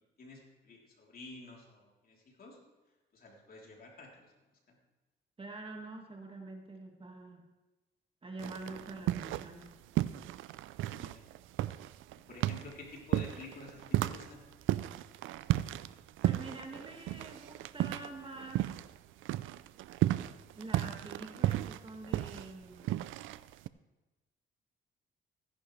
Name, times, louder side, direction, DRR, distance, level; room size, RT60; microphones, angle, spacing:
voice 1, 0.2-2.6 3.1-4.3 4.7-4.8 10.8-11.2 12.3-14.4, left 3 dB, 50° left, -2 dB, 3.4 m, -50 dB
voice 2, 5.4-7.4 8.2-9.7 16.2-18.7 20.5-23.0, right 2 dB, 25° right, 2 dB, 1.8 m, -46 dB
sound 1, 8.4-9.7 9.9-19.0 19.2-23.7, right 15 dB, 85° right, 0.4 m, -34 dB
15.5 x 11.0 x 3.3 m, 1.1 s
cardioid pair, 90°, 20 cm